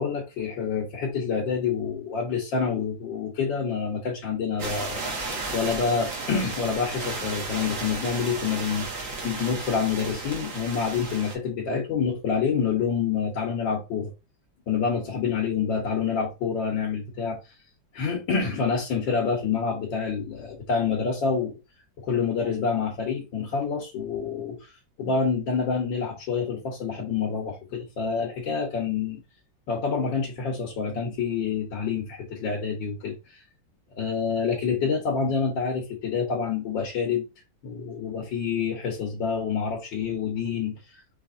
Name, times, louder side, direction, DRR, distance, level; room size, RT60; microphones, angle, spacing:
voice 1, 0.0-14.1 14.7-17.4 17.9-21.5 22.0-24.6 25.0-29.2 29.7-33.2 34.0-37.2 37.6-40.7, left 6 dB, 80° left, 1.8 m, -27 dB
sound 1, 4.6-11.4, right 3 dB, 45° right, 1.5 m, -34 dB
5.2 x 3.3 x 2.6 m
omnidirectional pair, 2.0 m